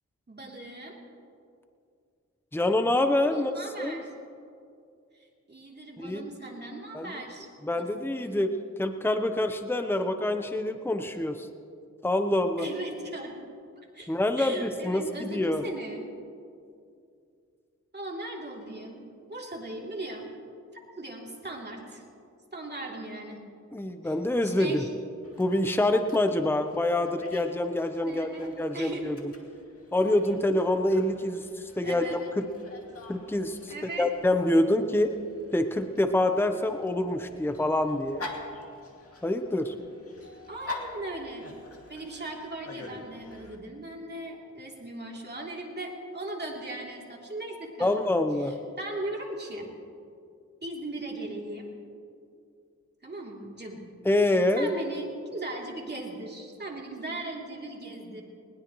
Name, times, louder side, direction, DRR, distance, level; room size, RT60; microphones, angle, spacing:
voice 1, 0.3-1.0 3.3-4.1 5.5-7.5 7.8-7.9 8.2-8.4 12.6-13.5 13.8-14.1 14.4-16.0 17.9-20.3 21.0-22.0 22.5-23.4 24.0-24.1 24.4-24.9 28.0-28.5 28.7-29.2 31.8-32.2 33.7-34.1 40.5-41.5 41.9-48.1 48.4-49.7 50.6-51.7 53.0-53.8 54.5-58.2, right 2 dB, 35° right, -1 dB, 3.2 m, -38 dB
voice 2, 2.5-3.5 3.8-4.0 6.0-6.3 6.9-7.1 7.6-11.5 12.0-12.7 14.1-15.7 23.7-24.8 25.4-29.3 29.9-32.5 33.1-35.1 35.5-38.3 39.2-39.7 47.8-48.5 54.0-54.7, left 1 dB, 10° left, 7 dB, 0.9 m, -26 dB
Dog, 25.2-43.6, left 2 dB, 50° left, 2.3 m, -46 dB
20.5 x 20.0 x 3.1 m, 2.4 s
cardioid pair, 70°, 29 cm